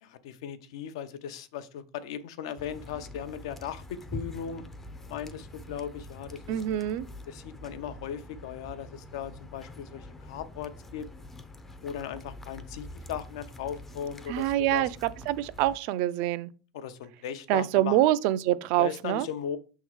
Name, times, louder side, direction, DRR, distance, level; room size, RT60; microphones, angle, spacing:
voice 1, 0.0-4.6 5.1-6.6 7.3-11.1 11.8-14.9 16.7-18.0 18.8-19.6, left 8 dB, 75° left, 0.7 m, -38 dB
sound 1, 2.6-15.8, left 1 dB, 10° left, 0.5 m, -45 dB
voice 2, 6.5-7.1 14.3-16.5 17.5-19.3, right 14 dB, 50° right, 0.4 m, -26 dB
6.2 x 3.6 x 4.6 m
supercardioid pair, 150°, 3 cm